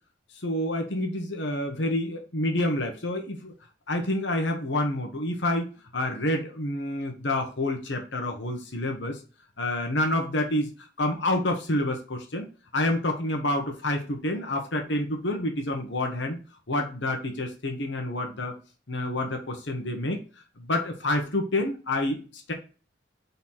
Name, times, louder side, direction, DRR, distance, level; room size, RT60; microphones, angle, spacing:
voice 1, 0.4-3.5 3.9-5.7 5.9-9.2 9.6-10.7 11.0-12.5 12.7-16.4 16.7-18.5 18.9-20.2 20.6-22.5, left 1 dB, 70° left, 3 dB, 1.2 m, -28 dB
4.5 x 4.1 x 5.5 m, 0.35 s
head